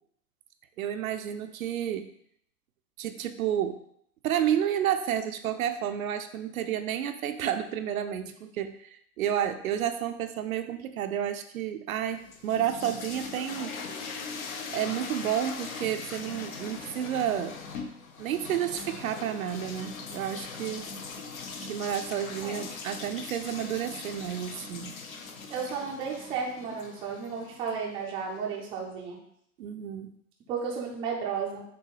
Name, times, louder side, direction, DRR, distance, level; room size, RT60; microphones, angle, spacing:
voice 1, 0.8-2.1 3.0-3.8 4.2-13.8 14.7-17.6 18.2-20.9 21.6-24.9 29.6-30.2, right 10 dB, 60° right, 8 dB, 0.5 m, -31 dB
sound 1, 12.1-28.1, left 4 dB, 60° left, 0.7 m, -41 dB
voice 2, 25.5-29.2 30.5-31.6, right 6 dB, 10° right, -2 dB, 0.4 m, -33 dB
6.7 x 2.2 x 3.2 m, 0.69 s
figure-of-eight pair, 100°, 47 cm